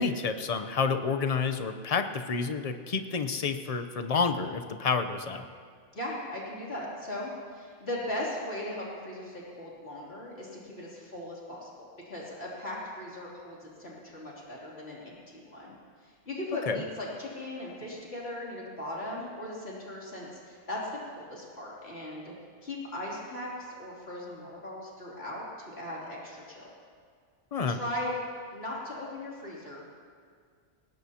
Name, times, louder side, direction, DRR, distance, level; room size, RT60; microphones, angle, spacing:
voice 1, 0.0-5.5 16.7-16.8 27.5-27.8, left 5 dB, 40° left, 7 dB, 0.7 m, -29 dB
voice 2, 5.9-22.3 22.6-26.7 27.7-28.2 28.5-29.9, left 1 dB, 60° left, -6 dB, 3.3 m, -38 dB
20.0 x 18.0 x 2.9 m, 2.1 s
omnidirectional pair, 1.2 m